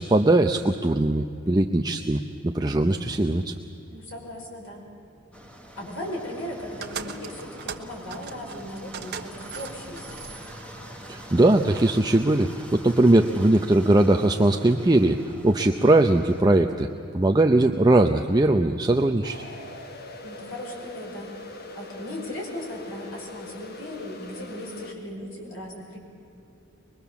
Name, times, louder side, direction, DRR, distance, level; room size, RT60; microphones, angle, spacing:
voice 1, 0.0-3.5 11.1-15.2 15.4-16.9 17.1-19.4, right 2 dB, 20° right, 4 dB, 0.6 m, -20 dB
voice 2, 3.9-4.9 5.8-10.2 20.2-21.4 21.7-26.0, left 1 dB, 85° left, -1 dB, 5.5 m, -37 dB
sound 1, 5.3-16.4, equal, 5° left, 1.6 m, -44 dB
sound 2, 6.8-11.9, right 6 dB, 55° right, 1.3 m, -40 dB
sound 3, 19.2-24.9, left 2 dB, 50° left, 1.5 m, -42 dB
23.5 x 21.5 x 7.1 m, 2.8 s
head